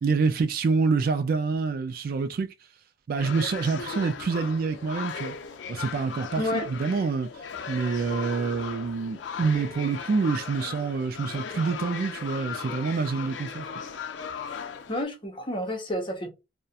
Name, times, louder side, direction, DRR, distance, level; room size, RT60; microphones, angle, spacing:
voice 1, 0.0-2.5 3.1-5.4 5.7-7.3 7.7-13.7, right 4 dB, 55° right, 0.3 m, -27 dB
sound 1, 3.2-15.0, left 6 dB, 85° left, 0.5 m, -37 dB
voice 2, 6.4-6.7 14.9-16.3, left 1 dB, 25° left, 0.7 m, -30 dB
2.4 x 2.1 x 2.7 m
head